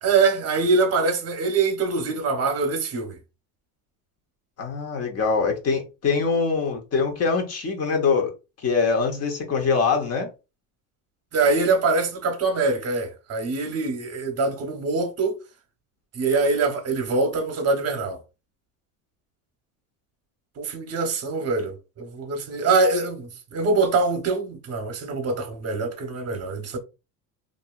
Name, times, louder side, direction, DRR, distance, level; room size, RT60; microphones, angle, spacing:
voice 1, 0.0-3.2 11.3-15.4 16.1-18.2 20.6-26.8, right 3 dB, 35° right, 0.9 m, -24 dB
voice 2, 4.6-8.3 8.6-10.3, left 5 dB, 35° left, 0.9 m, -23 dB
2.7 x 2.5 x 2.4 m
supercardioid pair, 105°, 41 cm